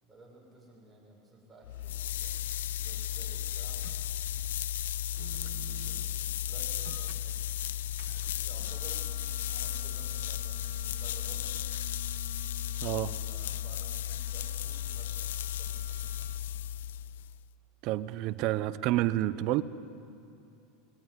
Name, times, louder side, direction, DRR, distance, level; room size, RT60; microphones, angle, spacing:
voice 1, 0.0-4.0 5.1-7.6 8.1-9.1 9.4-11.6 13.2-16.6, right 2 dB, 10° right, -3 dB, 6.7 m, -55 dB
sound 1, 1.6-17.4, left 11 dB, 90° left, 0.4 m, -35 dB
sound 2, 3.4-16.4, right 14 dB, 70° right, 1.2 m, -54 dB
voice 2, 12.8-13.2 17.8-19.6, right 15 dB, 50° right, 14 dB, 0.8 m, -29 dB
21.0 x 18.5 x 9.7 m, 2.6 s
supercardioid pair, 135°, 0 cm